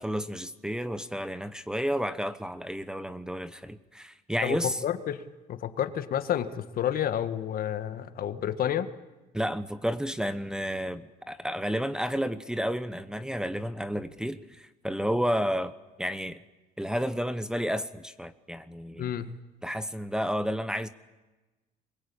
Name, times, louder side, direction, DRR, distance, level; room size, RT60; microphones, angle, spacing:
voice 1, 0.0-4.8 9.3-15.7 16.0-16.4 16.8-19.1 19.6-20.9, equal, 5° right, 1.0 m, -31 dB
voice 2, 4.4-5.2 5.5-8.9 19.0-19.3, left 10 dB, 60° left, 1.7 m, -30 dB
24.0 x 21.5 x 8.7 m
cardioid pair, 110°, 17 cm